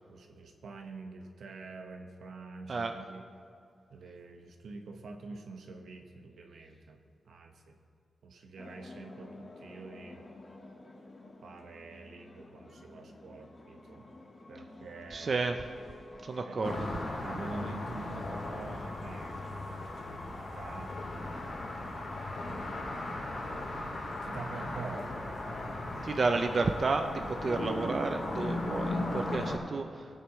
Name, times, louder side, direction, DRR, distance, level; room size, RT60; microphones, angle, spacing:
voice 1, 0.1-3.3 3.9-7.0 7.3-7.8 8.2-10.2 11.4-14.1 14.5-15.3 16.5-16.6 17.2-19.6 20.0-20.1 20.4-22.3 24.2-26.2, right 3 dB, 85° right, 3 dB, 1.2 m, -46 dB
sound 1, 8.6-22.9, left 2 dB, 30° left, 1.5 m, -51 dB
voice 2, 15.1-15.5 16.2-16.9 26.0-30.1, right 3 dB, 40° right, 5 dB, 0.5 m, -31 dB
sound 2, 16.6-29.6, left 2 dB, 55° left, 2.3 m, -37 dB
21.0 x 9.4 x 3.1 m, 2.4 s
wide cardioid pair, 150°, 0 cm